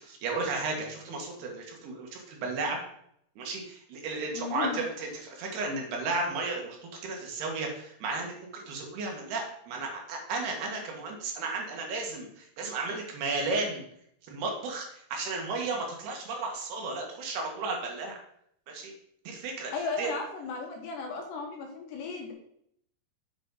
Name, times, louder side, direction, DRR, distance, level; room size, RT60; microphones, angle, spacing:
voice 1, 0.0-2.8 3.4-6.8 7.0-13.8 14.3-18.2 18.7-18.9 19.3-19.7 20.0-20.1, right 3 dB, 70° right, 1 dB, 3.5 m, -34 dB
voice 2, 4.3-4.8 19.7-22.3, left 4 dB, 80° left, 1 dB, 3.8 m, -35 dB
8.0 x 7.6 x 4.0 m, 0.70 s
omnidirectional pair, 4.8 m